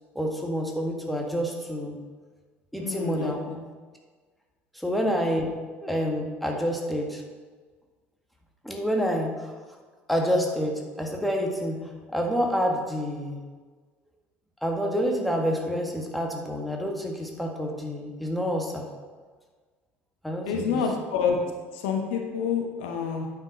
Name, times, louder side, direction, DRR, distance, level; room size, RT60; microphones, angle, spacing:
voice 1, 0.1-2.0 2.7-3.4 4.7-5.5 5.8-7.2 8.6-9.5 10.1-11.8 12.1-13.4 14.6-18.9 20.2-20.8, equal, ahead, 1 dB, 1.5 m, -28 dB
voice 2, 2.8-3.6 4.9-5.1 20.4-21.4 21.7-23.3, left 6 dB, 65° left, 2 dB, 0.9 m, -28 dB
9.3 x 6.1 x 3.9 m, 1.4 s
figure-of-eight pair, 60°, 7 cm